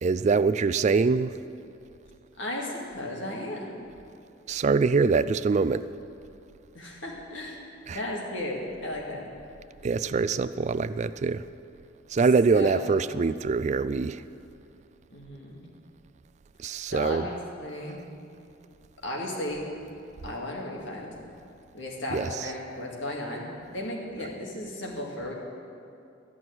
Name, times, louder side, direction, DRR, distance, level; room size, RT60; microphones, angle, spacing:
voice 1, 0.0-1.4 4.5-5.8 7.9-8.0 9.8-11.5 12.1-14.2 16.6-17.3 22.1-22.3, right 4 dB, 35° right, 14 dB, 0.3 m, -24 dB
voice 2, 2.4-3.8 6.7-7.6 7.9-9.3 12.5-12.8 15.1-15.7 16.9-18.0 19.0-19.7 20.2-21.1 21.7-25.3, left 1 dB, 75° left, -1 dB, 2.1 m, -35 dB
13.5 x 6.1 x 9.4 m, 2.6 s
head